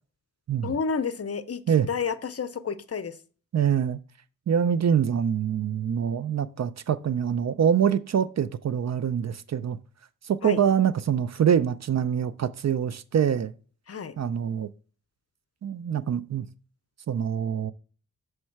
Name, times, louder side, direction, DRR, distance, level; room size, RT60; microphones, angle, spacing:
voice 1, 0.6-1.6 1.9-3.2 10.4-10.6 13.9-14.1, left 5 dB, 45° left, 0.6 m, -30 dB
voice 2, 3.5-4.0 4.5-9.8 10.3-13.5 14.2-14.7 15.6-16.5 17.1-17.7, right 8 dB, 50° right, 0.4 m, -25 dB
7.2 x 3.3 x 4.6 m
cardioid pair, 65°, 35 cm